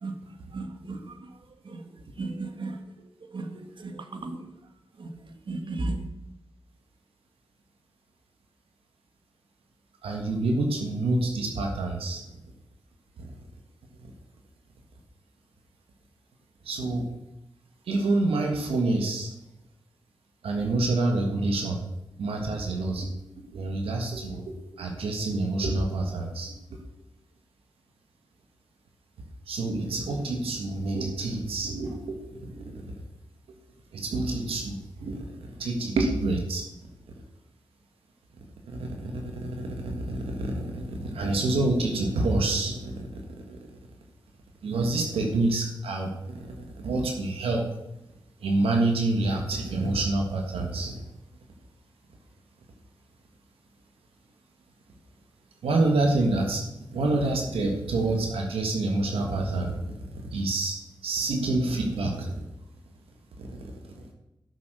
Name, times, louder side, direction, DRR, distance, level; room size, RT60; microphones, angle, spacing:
voice 1, 0.0-4.5 5.0-6.1, right 2 dB, 60° right, 6 dB, 1.8 m, -36 dB
voice 2, 10.0-12.2 16.6-17.1 17.9-19.3 20.4-21.8 22.2-26.8 29.5-32.7 33.9-35.2 35.6-36.6 38.7-43.2 43.5-43.6 44.6-47.7 48.4-51.1 55.6-56.6 56.9-59.9 60.3-60.8 61.0-62.3 63.4-63.6 63.9-64.1, right 2 dB, 90° right, 2 dB, 1.5 m, -27 dB
12.5 x 6.4 x 6.6 m, 0.92 s
cardioid pair, 45°, 9 cm